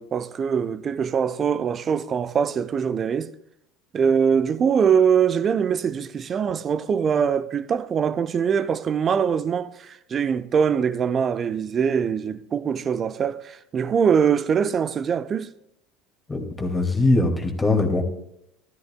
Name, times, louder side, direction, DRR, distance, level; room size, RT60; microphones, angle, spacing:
voice 1, 0.0-3.3 3.9-15.5, right 7 dB, 35° right, 0.6 m, -23 dB
voice 2, 16.3-18.0, left 2 dB, 15° left, 2.1 m, -21 dB
15.0 x 13.0 x 2.2 m
figure-of-eight pair, 70°, 0 cm